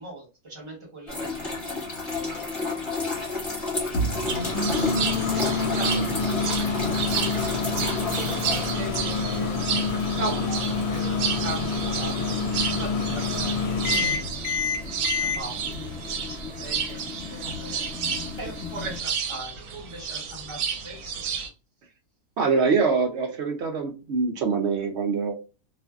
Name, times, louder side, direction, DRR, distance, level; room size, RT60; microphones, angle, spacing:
voice 1, 0.0-1.8 2.2-2.9 4.0-6.0 6.7-6.9 7.4-7.5 8.7-9.6 9.9-12.1 12.6-14.2 15.2-15.7 16.0-17.0 17.3-17.8 18.4-21.1, right 1 dB, 25° right, -2 dB, 1.0 m, -39 dB
sound 1, 1.1-19.0, left 3 dB, 20° left, 1.1 m, -34 dB
Microwave oven, 3.9-15.4, left 4 dB, 75° left, 1.0 m, -27 dB
sound 2, 4.3-21.5, right 7 dB, 85° right, 1.1 m, -32 dB
voice 2, 22.4-25.3, right 5 dB, 65° right, 4 dB, 0.7 m, -24 dB
2.5 x 2.4 x 2.3 m, 0.30 s
omnidirectional pair, 1.5 m